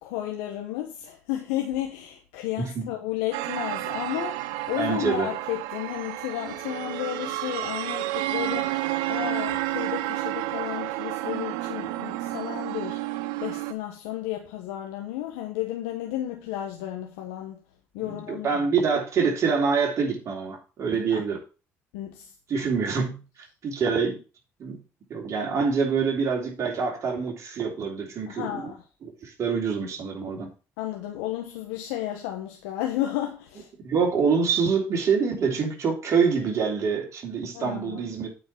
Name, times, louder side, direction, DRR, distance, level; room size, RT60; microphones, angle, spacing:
voice 1, 0.0-17.6 17.9-18.6 21.1-21.2 21.9-22.3 28.3-28.8 30.8-33.7 37.5-38.1, left 13 dB, 90° left, 1.2 m, -33 dB
voice 2, 2.6-2.9 4.7-5.3 18.0-21.4 22.5-24.2 24.6-24.8 25.1-28.7 29.0-30.5 33.8-38.3, right 5 dB, 50° right, 3.2 m, -26 dB
sound 1, 3.3-13.7, right 15 dB, 85° right, 0.6 m, -31 dB
8.6 x 4.5 x 6.0 m
supercardioid pair, 70°, 6 cm